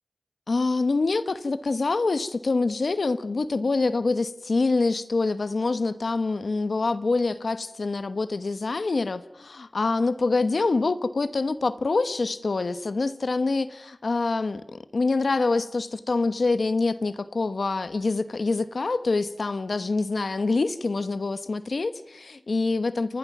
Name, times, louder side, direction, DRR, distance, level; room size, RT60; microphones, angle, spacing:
voice 1, 0.5-23.2, left 3 dB, 75° left, 13 dB, 1.1 m, -25 dB
29.5 x 21.0 x 6.0 m, 0.89 s
cardioid pair, 45°, 0 cm